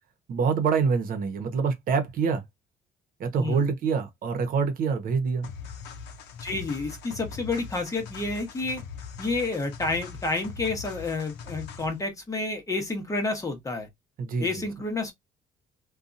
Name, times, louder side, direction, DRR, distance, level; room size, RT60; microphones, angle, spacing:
voice 1, 0.3-2.4 3.2-5.5 14.2-14.6, right 5 dB, 55° right, 0.9 m, -26 dB
sound 1, 5.4-12.0, left 6 dB, 85° left, 0.6 m, -41 dB
voice 2, 6.4-8.8 9.2-13.9 14.4-15.1, left 3 dB, 20° left, 0.9 m, -30 dB
2.7 x 2.3 x 2.5 m
cardioid pair, 110°, 17 cm